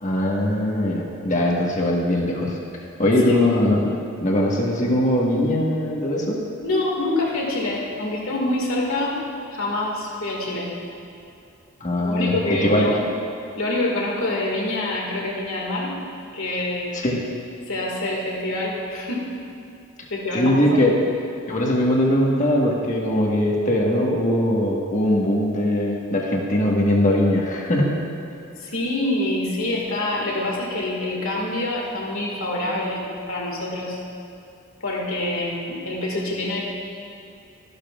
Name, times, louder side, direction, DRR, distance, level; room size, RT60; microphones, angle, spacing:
voice 1, 0.0-2.5 3.0-3.9 4.2-6.4 11.8-12.3 12.6-12.9 16.9-17.2 20.3-20.9 21.5-27.9, left 1 dB, 35° left, -2 dB, 1.4 m, -21 dB
voice 2, 6.6-9.2 9.5-10.7 12.0-13.0 13.6-15.9 16.3-17.0 17.7-19.3 20.1-20.8 28.6-34.0 34.8-36.6, left 2 dB, 70° left, -2 dB, 2.1 m, -26 dB
13.5 x 12.0 x 2.5 m, 2.7 s
head